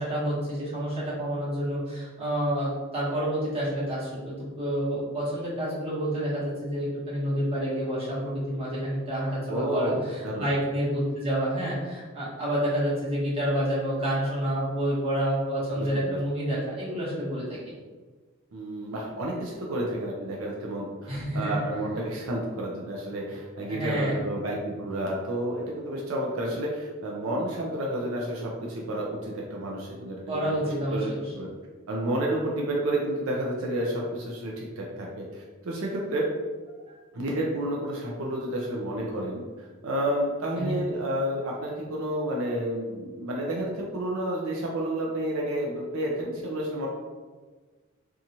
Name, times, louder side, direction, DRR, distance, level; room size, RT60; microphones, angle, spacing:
voice 1, 0.0-17.7 21.1-21.5 23.7-24.2 30.3-31.2 36.9-37.0 40.5-40.9, equal, 30° right, -9 dB, 1.1 m, -29 dB
voice 2, 9.5-10.0 10.2-10.5 15.7-16.2 18.5-31.5 31.9-36.3 37.1-46.9, right 1 dB, 80° right, -2 dB, 0.5 m, -30 dB
2.6 x 2.3 x 2.8 m, 1.4 s
head